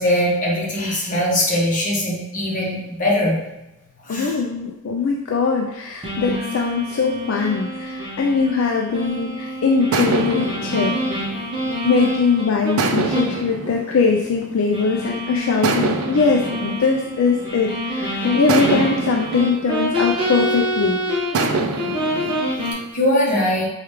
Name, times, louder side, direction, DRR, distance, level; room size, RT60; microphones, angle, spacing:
voice 1, 0.0-3.4 4.1-4.3 22.9-23.6, left 1 dB, 35° left, -4 dB, 1.0 m, -21 dB
voice 2, 4.1-10.9 11.8-21.0, left 4 dB, 60° left, 0 dB, 0.3 m, -21 dB
sound 1, 6.0-12.7 13.1-13.4 13.7-13.8 14.7-21.5 21.7-22.7, equal, 20° right, 0.9 m, -26 dB
sound 2, 9.0-9.3 9.9-12.2 12.8-15.0 15.6-17.8 18.5-20.7 21.3-22.9, right 4 dB, 75° right, 0.4 m, -26 dB
4.8 x 2.3 x 3.1 m, 0.96 s
head